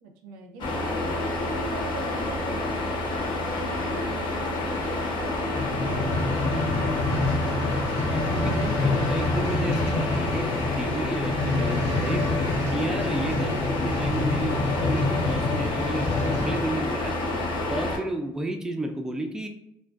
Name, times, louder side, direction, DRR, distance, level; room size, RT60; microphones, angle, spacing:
voice 1, 0.0-3.0 3.5-6.9, right 3 dB, 90° right, 3 dB, 0.4 m, -41 dB
sound 1, 0.6-18.0, left 2 dB, 50° left, 0.6 m, -28 dB
sound 2, 5.5-16.8 17.4-17.5, left 3 dB, 70° left, 0.8 m, -28 dB
voice 2, 7.9-12.3 12.7-17.2 17.7-19.5, right 1 dB, 5° right, 4 dB, 0.3 m, -32 dB
2.4 x 2.2 x 2.3 m, 0.79 s
supercardioid pair, 80°, 10 cm